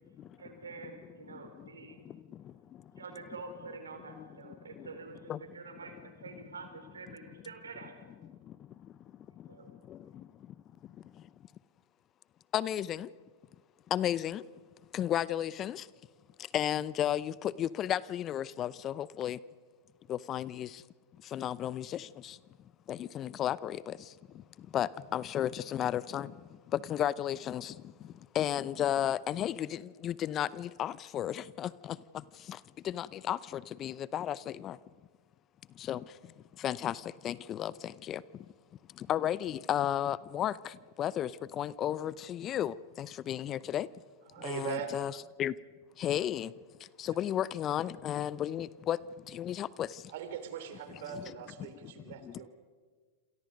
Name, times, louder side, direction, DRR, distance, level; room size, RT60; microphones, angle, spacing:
voice 1, 0.4-2.0 3.0-8.0 9.5-9.7, right 4 dB, 85° right, 4.8 m, -47 dB
voice 2, 12.5-13.1 13.9-14.4 14.9-15.8 16.5-17.3 17.6-19.4 20.1-20.7 21.3-22.0 22.9-23.8 24.7-26.3 26.9-27.7 28.4-31.7 32.9-33.4 33.8-34.8 35.9-36.0 36.6-36.9 37.2-37.7 38.1-38.2 39.1-40.5 41.0-41.3 41.6-43.9 44.4-45.1 45.4-45.5 46.0-46.5 47.0-49.0 49.3-49.9, left 11 dB, 35° left, 0.7 m, -32 dB
voice 3, 44.3-44.9 47.0-47.2 50.1-52.5, right 9 dB, 65° right, 3.4 m, -40 dB
28.5 x 27.5 x 5.3 m
hypercardioid pair, 100°, 0 cm